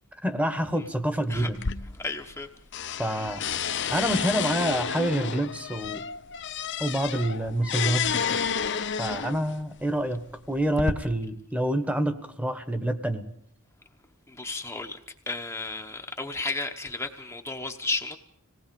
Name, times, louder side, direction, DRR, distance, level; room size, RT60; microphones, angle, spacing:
voice 1, 0.2-1.6 3.0-3.4 3.9-6.0 6.8-8.5 9.0-13.2, right 1 dB, 5° right, 9 dB, 1.3 m, -27 dB
sound 1, 1.5-2.5 2.7-9.6 10.3-10.9, left 7 dB, 55° left, 0.9 m, -30 dB
voice 2, 2.0-2.5 14.3-15.0 15.3-18.2, left 3 dB, 10° left, 3 dB, 1.0 m, -33 dB
26.5 x 19.0 x 5.3 m, 0.70 s
head